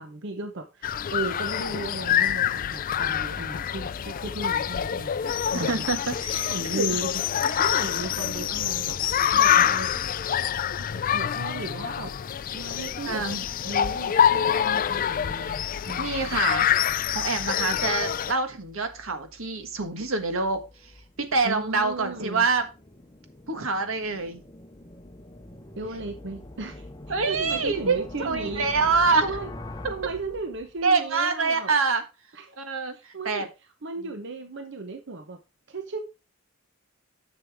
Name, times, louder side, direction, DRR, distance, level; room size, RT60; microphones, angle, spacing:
voice 1, 0.0-5.9 6.3-9.9 10.7-13.2 13.6-16.2 17.7-17.8 21.4-22.5 25.8-26.9 27.3-28.6 29.2-29.5 29.9-31.7 32.3-32.5 32.9-33.5 33.8-35.4 35.7-36.0, right 2 dB, 60° right, 6 dB, 0.9 m, -36 dB
sound 1, 0.8-18.3, left 9 dB, 45° left, 0.4 m, -26 dB
voice 2, 5.5-7.0 13.1-13.4 15.4-15.6 16.0-16.8 17.1-20.9 21.2-22.7 23.5-24.4 27.1-29.3 30.8-32.0 32.6-33.5, right 4 dB, 85° right, 8 dB, 1.5 m, -26 dB
sound 2, 18.3-31.0, left 1 dB, 20° left, 0.8 m, -44 dB
10.5 x 6.8 x 3.5 m, 0.29 s
head